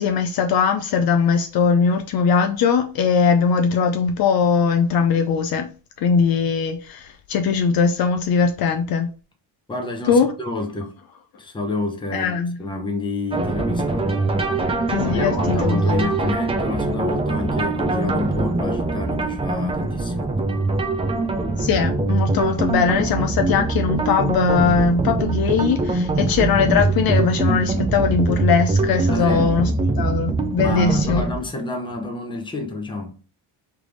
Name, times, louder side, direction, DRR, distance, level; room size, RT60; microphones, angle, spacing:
voice 1, 0.0-5.7 6.0-9.1 10.1-10.3 12.1-12.6 14.9-16.1 21.6-29.7 30.0-31.2, left 6 dB, 50° left, 0.5 m, -20 dB
voice 2, 9.7-10.9 11.4-14.1 15.0-20.3 29.1-29.5 30.6-33.2, left 3 dB, 10° left, 0.7 m, -29 dB
sound 1, 13.3-31.4, right 3 dB, 15° right, 0.3 m, -22 dB
3.4 x 3.3 x 3.8 m
cardioid pair, 150°, 48 cm